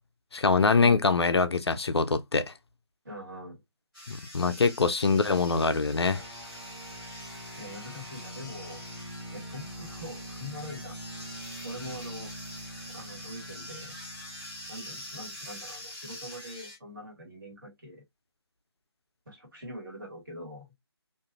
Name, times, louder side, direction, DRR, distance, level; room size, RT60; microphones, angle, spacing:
voice 1, 0.3-2.5 4.1-6.2, left 4 dB, 70° left, 0.4 m, -24 dB
voice 2, 3.0-3.6 7.6-8.9 9.3-10.9 11.6-12.3 12.9-13.9 14.7-18.0 19.2-20.7, left 1 dB, 50° right, 1.6 m, -43 dB
sound 1, 3.9-16.8, left 1 dB, ahead, 0.3 m, -45 dB
sound 2, 6.0-15.7, equal, 20° right, 1.2 m, -44 dB
2.6 x 2.5 x 2.3 m
figure-of-eight pair, 150°, 14 cm